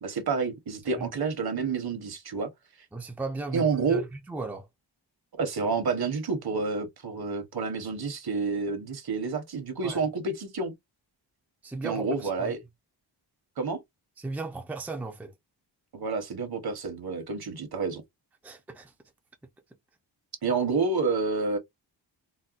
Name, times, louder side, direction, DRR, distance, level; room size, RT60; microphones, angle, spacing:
voice 1, 0.0-2.5 3.5-4.0 5.4-10.7 11.8-12.6 13.6-13.8 15.9-18.0 20.4-21.6, right 4 dB, 55° right, 1.0 m, -29 dB
voice 2, 2.9-4.7 9.8-10.0 11.6-12.5 14.2-15.3 18.4-18.9, right 3 dB, 5° right, 0.5 m, -36 dB
4.0 x 2.1 x 2.4 m
wide cardioid pair, 150°, 44 cm